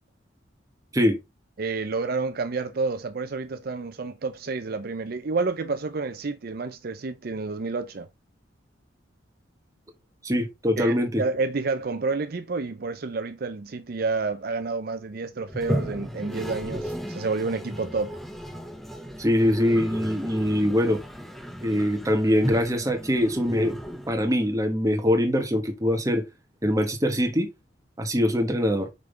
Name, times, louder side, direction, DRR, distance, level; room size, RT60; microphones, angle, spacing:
voice 1, 1.6-8.1 10.8-18.1, right 4 dB, 55° right, 0.5 m, -29 dB
voice 2, 10.2-11.2 19.2-21.0 21.6-23.8 24.1-26.2 26.6-27.5 28.0-28.9, equal, 20° right, 1.1 m, -23 dB
Toilet flush, 15.5-24.6, equal, ahead, 0.7 m, -35 dB
5.8 x 5.3 x 3.2 m
head